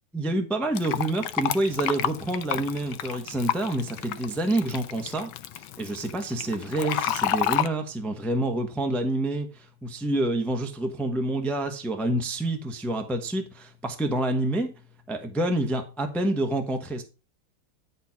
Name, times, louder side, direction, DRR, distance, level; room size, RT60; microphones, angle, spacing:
voice 1, 0.1-5.3 5.8-14.7 15.1-17.0, right 1 dB, ahead, 0.8 m, -28 dB
Fill (with liquid), 0.8-7.7, left 12 dB, 85° left, 1.5 m, -30 dB
11.0 x 4.4 x 5.7 m
omnidirectional pair, 2.1 m